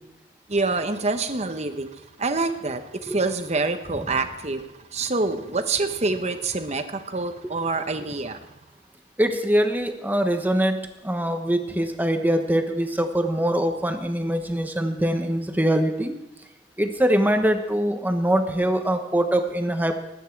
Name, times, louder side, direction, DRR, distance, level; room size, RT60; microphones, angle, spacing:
voice 1, 0.5-1.9 2.2-4.6 4.9-8.4, right 3 dB, 40° right, 8 dB, 1.0 m, -26 dB
voice 2, 9.2-16.1 16.8-19.9, right 1 dB, 10° right, 6 dB, 1.1 m, -23 dB
20.0 x 9.3 x 4.7 m, 0.97 s
head